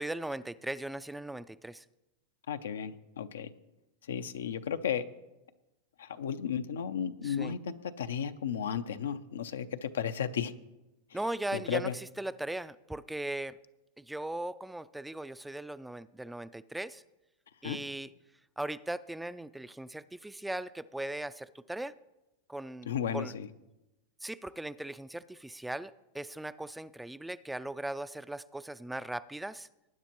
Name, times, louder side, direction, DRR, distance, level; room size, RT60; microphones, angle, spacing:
voice 1, 0.0-1.8 7.2-7.6 11.1-13.6 14.0-17.0 17.6-18.1 18.6-21.9 22.5-23.3 24.2-29.7, right 1 dB, 5° right, 15 dB, 0.3 m, -38 dB
voice 2, 2.5-3.5 4.1-5.0 6.0-10.5 11.5-11.9 17.6-17.8 22.9-23.5, left 8 dB, 85° left, 10 dB, 0.6 m, -34 dB
19.5 x 9.3 x 3.0 m, 0.99 s
hypercardioid pair, 110°, 0 cm